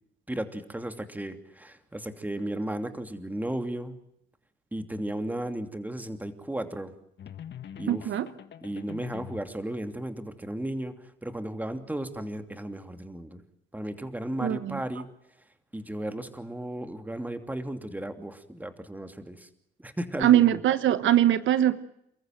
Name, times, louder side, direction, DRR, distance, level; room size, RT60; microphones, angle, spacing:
voice 1, 0.3-4.0 4.7-6.9 7.8-8.1 8.6-13.4 13.7-15.1 15.7-19.5 19.8-20.6, right 1 dB, 10° right, 7 dB, 2.8 m, -35 dB
sound 1, 7.2-9.6, left 9 dB, 60° left, 1.8 m, -43 dB
voice 2, 7.9-8.3 14.4-14.8 20.2-21.8, right 12 dB, 75° right, 13 dB, 1.2 m, -22 dB
29.5 x 14.5 x 9.3 m, 0.77 s
cardioid pair, 90°, 20 cm